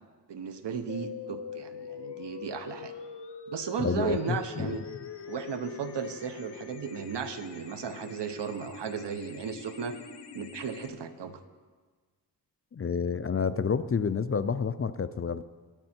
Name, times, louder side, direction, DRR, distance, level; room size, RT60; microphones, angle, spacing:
voice 1, 0.3-2.9 3.5-4.8 5.3-10.0 10.3-11.4, right 6 dB, 70° right, 9 dB, 1.1 m, -35 dB
sound 1, 0.9-10.9, left 6 dB, 70° left, 1.1 m, -44 dB
Wind instrument woodwind instrument, 3.7-8.0, right 2 dB, 35° right, 4.1 m, -59 dB
voice 2, 3.8-4.8 12.7-15.4, left 6 dB, 35° left, 13 dB, 0.5 m, -29 dB
22.5 x 8.7 x 4.5 m, 1.4 s
wide cardioid pair, 95°, 43 cm